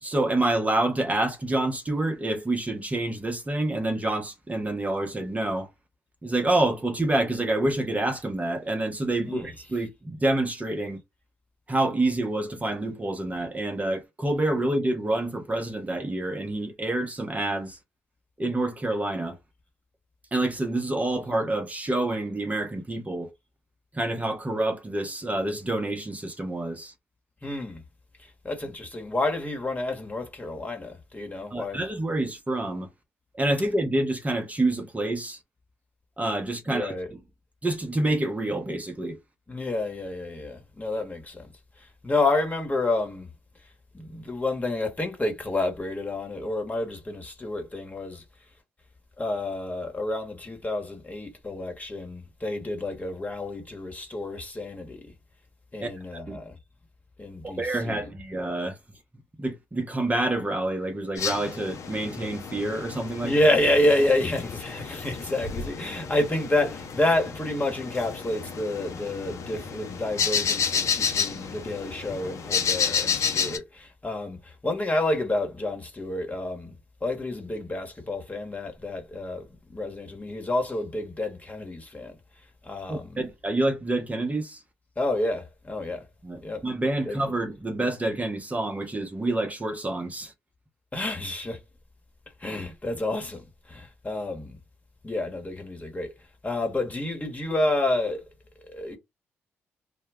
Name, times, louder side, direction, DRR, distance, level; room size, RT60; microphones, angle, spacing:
voice 1, 0.0-5.7 6.2-11.0 11.7-17.8 18.4-19.4 20.3-23.3 23.9-26.9 31.5-32.9 33.4-35.4 36.2-37.2 37.6-39.2 55.8-56.4 57.4-58.8 59.4-63.3 82.9-84.6 86.2-90.3, right 2 dB, 25° right, 0.8 m, -27 dB
voice 2, 27.4-27.8 28.4-31.8 36.7-37.1 39.5-41.5 41.8-43.3 43.9-48.2 49.2-55.1 55.7-56.6 57.2-58.1 63.2-76.7 77.0-82.1 82.6-83.2 85.0-86.0 86.4-86.6 87.0-87.2 90.9-91.6 92.4-93.4 93.7-94.6 95.0-96.1 96.4-98.3 98.6-99.0, left 2 dB, 25° left, 1.1 m, -29 dB
sound 1, 61.2-73.6, left 6 dB, 55° left, 0.7 m, -31 dB
2.2 x 2.2 x 3.4 m
hypercardioid pair, 45°, 6 cm